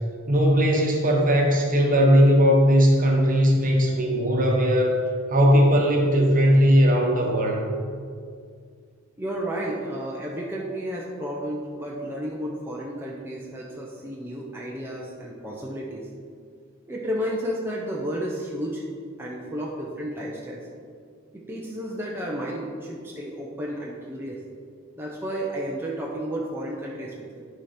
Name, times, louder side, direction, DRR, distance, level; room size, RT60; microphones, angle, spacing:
voice 1, 0.3-4.9 5.3-7.7, equal, 40° right, 0 dB, 1.4 m, -18 dB
voice 2, 9.2-16.1 16.9-18.8 19.2-20.6 21.3-24.4 25.0-27.4, equal, 10° right, -4 dB, 0.8 m, -32 dB
11.0 x 5.0 x 4.4 m, 2.1 s
head